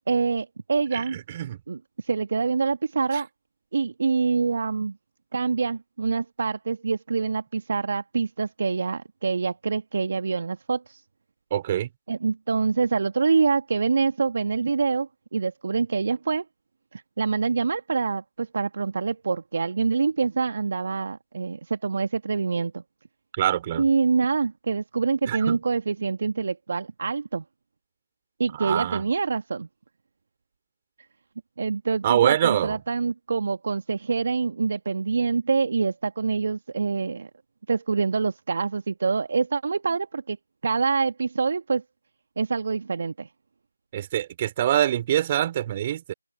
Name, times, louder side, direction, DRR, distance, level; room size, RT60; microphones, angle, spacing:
voice 1, 0.1-1.2 1.7-3.3 3.7-5.0 5.3-11.0 12.1-16.4 16.9-22.8 23.8-27.4 28.4-29.7 31.6-37.3 37.7-40.4 40.6-41.8 42.4-43.3, right 4 dB, 40° right, 1.6 m, -25 dB
voice 2, 0.9-1.6 11.5-11.9 23.3-23.8 25.3-25.6 28.5-29.0 32.0-32.8 43.9-46.1, right 11 dB, 20° right, 3.7 m, -25 dB
figure-of-eight pair, 160°, 0 cm